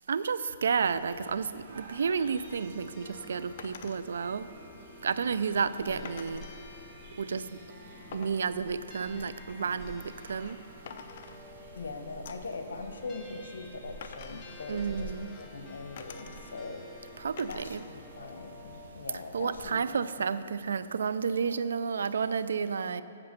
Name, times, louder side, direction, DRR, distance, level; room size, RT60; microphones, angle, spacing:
voice 1, 0.1-4.5 5.0-6.4 7.2-7.6 8.1-10.6 14.7-15.3 17.2-17.8 19.3-23.0, right 6 dB, 80° right, 14 dB, 0.4 m, -31 dB
sound 1, 0.8-19.6, right 1 dB, 50° right, 1.6 m, -51 dB
sound 2, 2.5-18.9, left 2 dB, 15° left, 1.0 m, -52 dB
sound 3, 3.6-4.0 6.0-6.6 8.1-10.6 10.9-11.8 12.3-12.6 14.0-15.5 16.0-16.7 17.4-17.9 18.3-19.0, left 6 dB, 50° left, 0.6 m, -49 dB
voice 2, 5.9-6.2 11.7-16.8 17.5-19.8, left 3 dB, 90° left, 6 dB, 1.0 m, -41 dB
7.9 x 7.5 x 5.9 m, 2.9 s
hypercardioid pair, 150°, 0 cm